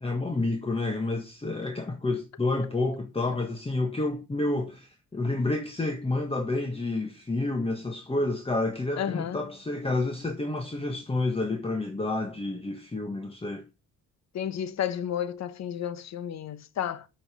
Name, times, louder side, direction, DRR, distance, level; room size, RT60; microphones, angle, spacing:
voice 1, 0.0-13.7, left 2 dB, 20° left, 1.5 m, -29 dB
voice 2, 9.0-9.5 14.3-17.1, left 9 dB, 60° left, 1.1 m, -32 dB
7.9 x 5.7 x 6.7 m
cardioid pair, 90°, 30 cm